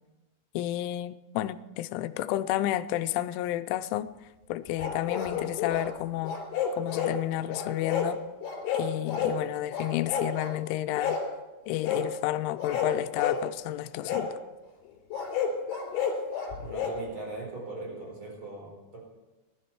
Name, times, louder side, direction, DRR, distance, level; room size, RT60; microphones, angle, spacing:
voice 1, 0.5-4.1 4.5-6.4 6.8-8.2 8.7-11.2 11.7-14.4, left 14 dB, 90° left, 3.0 m, -31 dB
sound 1, 4.8-5.9 6.2-7.2 7.5-8.1 8.4-9.4 9.7-10.5 11.0-11.3 11.8-12.1 12.6-13.4 14.0-14.3 15.1-17.0, left 7 dB, 65° left, 5.2 m, -30 dB
voice 2, 16.6-19.0, right 3 dB, 25° right, 4.6 m, -40 dB
20.0 x 12.0 x 4.4 m
omnidirectional pair, 5.3 m